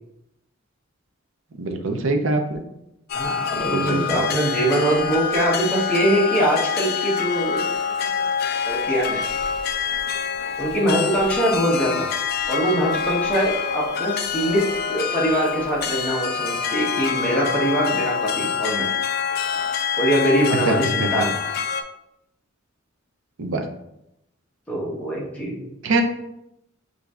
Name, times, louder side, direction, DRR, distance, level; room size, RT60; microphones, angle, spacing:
voice 1, 1.6-2.6 3.5-4.2 11.8-11.9 20.7-21.1 23.4-23.7 25.8-26.0, right 2 dB, 65° right, 5 dB, 0.5 m, -24 dB
sound 1, 3.1-21.8, left 6 dB, 50° left, 0.3 m, -26 dB
voice 2, 3.1-7.7 8.6-9.2 10.6-12.1 12.5-18.9 20.0-21.3 24.7-25.6, right 1 dB, 5° left, -6 dB, 1.0 m, -23 dB
6.7 x 2.7 x 2.4 m, 0.85 s
head